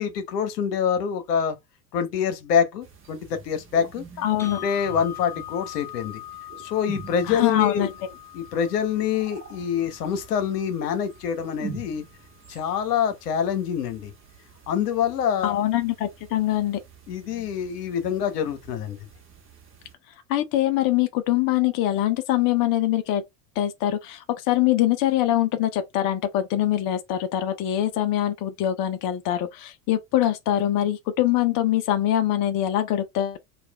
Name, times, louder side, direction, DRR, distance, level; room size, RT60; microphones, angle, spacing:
voice 1, 0.0-1.6 1.9-4.0 4.6-6.2 6.6-7.9 8.3-12.0 12.5-14.1 14.7-15.6 17.1-19.0, left 8 dB, 80° left, 0.9 m, -25 dB
sound 1, 2.8-19.9, right 5 dB, 25° right, 1.1 m, -45 dB
voice 2, 4.2-4.6 7.3-7.9 15.4-16.8 20.3-23.2 23.6-33.4, left 13 dB, 45° left, 0.7 m, -23 dB
sound 2, 4.4-12.4, left 12 dB, 5° left, 0.4 m, -42 dB
3.2 x 2.4 x 2.3 m
hypercardioid pair, 80°, 47 cm